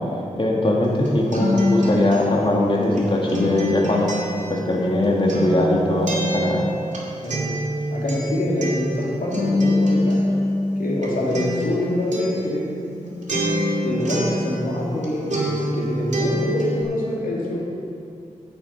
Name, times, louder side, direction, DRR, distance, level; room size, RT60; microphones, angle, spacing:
voice 1, 0.4-4.1 4.5-6.6, left 1 dB, 40° left, -2 dB, 2.1 m, -20 dB
Acoustic guitar, 0.8-15.1 15.3-16.8, equal, 60° right, 2.4 m, -25 dB
voice 2, 7.9-10.2 10.8-12.7 13.8-17.6, left 1 dB, 80° left, -4 dB, 2.6 m, -25 dB
9.7 x 9.0 x 5.6 m, 2.6 s
wide cardioid pair, 75°, 14 cm